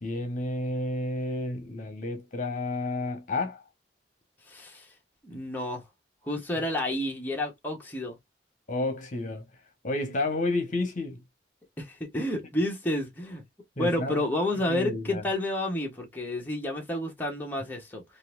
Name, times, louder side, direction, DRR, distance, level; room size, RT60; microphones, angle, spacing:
voice 1, 0.0-3.6 8.7-9.5 9.8-11.2 13.8-14.3 14.7-15.2, left 2 dB, 45° left, 1.1 m, -31 dB
voice 2, 4.5-4.9 5.2-5.8 6.2-8.2 11.8-13.4 13.8-18.0, left 1 dB, 10° left, 1.0 m, -30 dB
3.9 x 2.6 x 2.5 m
head